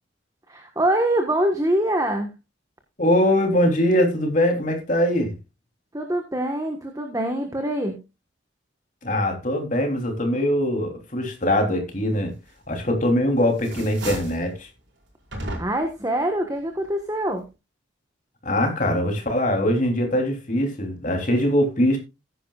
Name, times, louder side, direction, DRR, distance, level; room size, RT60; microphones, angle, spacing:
voice 1, 0.5-2.3 5.9-8.0 15.6-17.4, right 1 dB, 20° right, 1.3 m, -24 dB
voice 2, 3.0-5.3 9.0-12.3 12.7-14.7 18.4-22.0, left 1 dB, 40° left, 3.3 m, -22 dB
sound 1, 12.7-13.2 13.5-14.5 15.3-16.0, right 1 dB, 75° right, 4.9 m, -34 dB
15.5 x 10.0 x 2.4 m
head